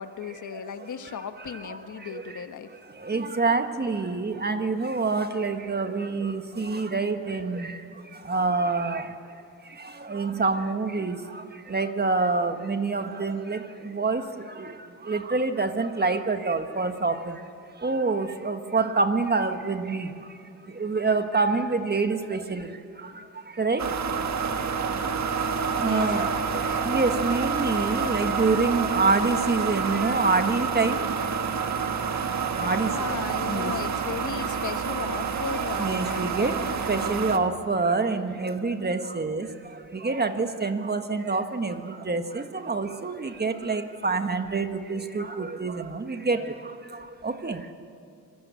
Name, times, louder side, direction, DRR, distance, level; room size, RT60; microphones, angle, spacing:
voice 1, 0.0-2.7 25.8-26.8 32.6-37.6, left 7 dB, 55° left, 9 dB, 1.3 m, -37 dB
voice 2, 1.6-2.4 2.7-9.2 9.6-17.5 17.8-24.2 25.6-31.3 31.5-33.7 34.2-34.3 35.8-47.7, right 3 dB, 25° right, 7 dB, 1.5 m, -27 dB
sound 1, 23.8-37.4, right 5 dB, 50° right, 1.5 m, -28 dB
24.5 x 20.0 x 8.3 m, 2.5 s
cardioid pair, 90°, 35 cm